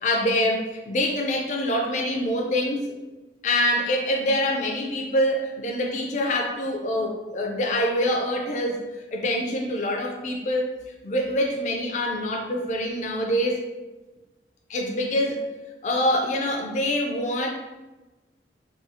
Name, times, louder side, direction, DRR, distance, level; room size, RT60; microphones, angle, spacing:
voice 1, 0.0-2.8 3.4-10.7 11.0-13.6 14.7-15.4 15.8-17.5, left 1 dB, 40° left, 1 dB, 0.4 m, -25 dB
3.7 x 2.3 x 2.7 m, 1.1 s
head